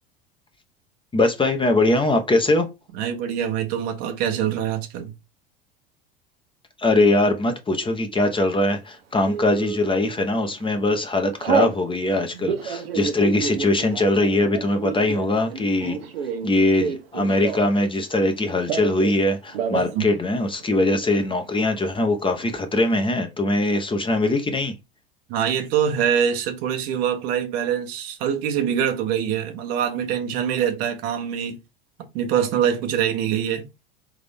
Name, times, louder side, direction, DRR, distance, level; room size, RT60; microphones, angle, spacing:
voice 1, 1.1-2.7 6.8-16.0 16.4-24.7, left 2 dB, 15° left, 1.0 m, -21 dB
voice 2, 2.9-5.1 19.7-20.1 25.3-31.6 32.1-33.7, right 9 dB, 55° right, 1.3 m, -24 dB
Telephone, 9.3-9.8 10.4-10.6 10.9-11.8 12.3-17.8 18.1-19.2 19.5-19.9 20.2-20.3 20.6-21.2, right 6 dB, 80° right, 1.0 m, -28 dB
3.9 x 3.7 x 3.5 m
hypercardioid pair, 80°, 30 cm